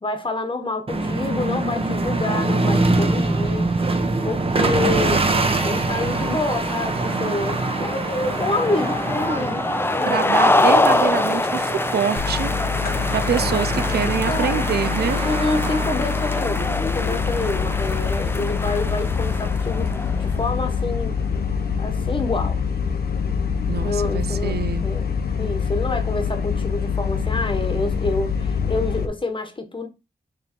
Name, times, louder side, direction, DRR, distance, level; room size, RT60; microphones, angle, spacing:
voice 1, 0.0-3.7 4.2-5.3 5.6-10.5 14.3-14.8 15.2-21.2 21.8-22.6 23.8-25.1 25.4-29.9, left 2 dB, 30° left, 1.3 m, -27 dB
sound 1, 0.9-19.5, right 2 dB, 35° right, 1.1 m, -25 dB
sound 2, 4.9-20.5, left 2 dB, 15° left, 0.5 m, -25 dB
voice 2, 10.1-12.5 13.1-15.2 23.7-24.9, right 8 dB, 80° right, 0.5 m, -25 dB
sound 3, 12.2-29.1, left 6 dB, 70° left, 1.0 m, -25 dB
6.7 x 3.4 x 4.4 m
wide cardioid pair, 120°, 17 cm